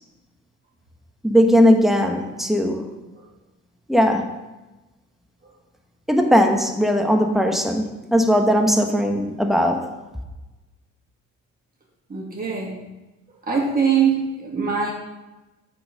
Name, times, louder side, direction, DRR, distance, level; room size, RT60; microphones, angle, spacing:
voice 1, 1.2-2.9 3.9-4.2 6.1-9.9, equal, ahead, 3 dB, 1.0 m, -18 dB
voice 2, 12.1-12.8 13.5-14.9, right 6 dB, 30° right, -3 dB, 2.2 m, -22 dB
7.6 x 4.3 x 5.2 m, 1.1 s
cardioid pair, 90°, 30 cm